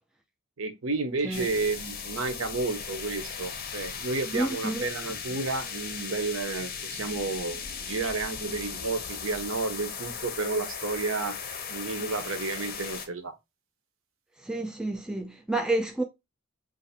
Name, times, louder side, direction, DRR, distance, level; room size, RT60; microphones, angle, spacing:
voice 1, 0.6-11.4 11.7-13.3, right 3 dB, 65° right, 0.7 m, -31 dB
sound 1, 1.3-13.1, left 6 dB, 40° left, 0.6 m, -37 dB
voice 2, 4.3-4.8 14.4-16.0, right 2 dB, 5° right, 0.3 m, -29 dB
2.5 x 2.5 x 4.0 m
head